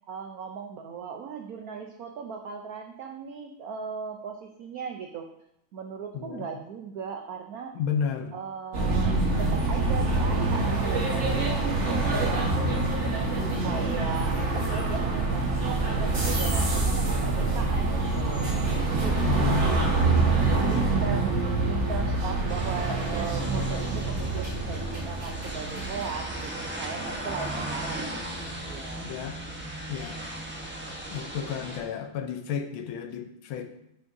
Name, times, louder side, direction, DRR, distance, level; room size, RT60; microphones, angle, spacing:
voice 1, 0.1-5.3 5.7-7.7 8.3-12.6 13.6-18.5 19.0-19.6 20.7-21.4 21.6-29.1, right 6 dB, 90° right, 3 dB, 0.8 m, -38 dB
voice 2, 6.1-6.5 7.7-8.3 19.2-19.8 20.5-20.9 29.0-29.4 29.9-30.2 31.1-33.7, left 7 dB, 75° left, 7 dB, 1.5 m, -32 dB
sound 1, 8.7-26.4, right 3 dB, 40° right, 1.4 m, -26 dB
sound 2, 22.5-31.8, right 1 dB, 20° right, 0.3 m, -36 dB
10.5 x 6.1 x 2.6 m, 0.82 s
omnidirectional pair, 2.3 m